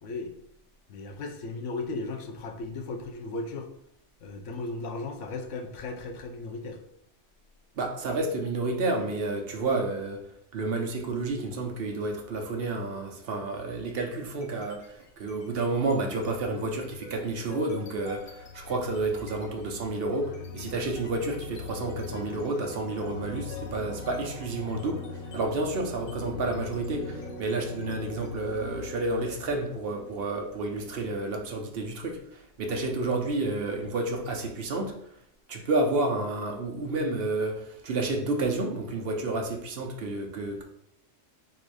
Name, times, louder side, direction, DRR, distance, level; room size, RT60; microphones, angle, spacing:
voice 1, 0.0-0.3 0.9-3.7 4.2-6.8 27.3-27.4, left 3 dB, 80° left, 4 dB, 1.0 m, -36 dB
voice 2, 7.8-10.2 10.5-34.9 35.5-40.6, right 2 dB, 60° right, 2 dB, 0.8 m, -30 dB
sound 1, 14.3-14.9 15.2-31.8, left 3 dB, 60° left, 0.6 m, -42 dB
3.8 x 2.5 x 4.7 m, 0.72 s
omnidirectional pair, 1.2 m